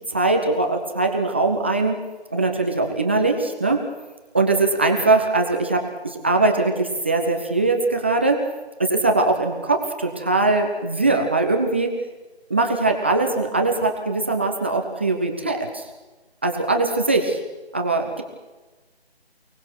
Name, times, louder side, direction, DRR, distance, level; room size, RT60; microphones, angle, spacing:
voice 1, 0.1-2.0 2.3-3.8 4.3-8.4 8.8-11.9 12.5-15.9 16.4-17.4 17.7-18.2, right 3 dB, 10° right, 3 dB, 0.9 m, -21 dB
29.5 x 18.5 x 6.2 m, 1.2 s
figure-of-eight pair, 165°, 32 cm